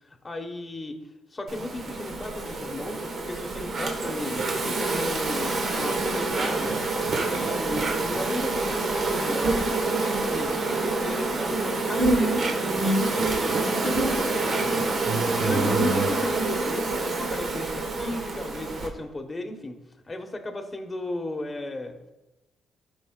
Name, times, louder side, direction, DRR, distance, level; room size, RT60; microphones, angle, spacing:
voice 1, 0.2-1.0 1.3-6.8 7.3-14.8 15.0-19.8 20.1-22.1, left 2 dB, 25° left, 4 dB, 1.0 m, -35 dB
Insect, 1.5-18.9, right 3 dB, 55° right, 1.2 m, -26 dB
14.0 x 5.4 x 2.3 m, 1.0 s
cardioid pair, 90°, 0 cm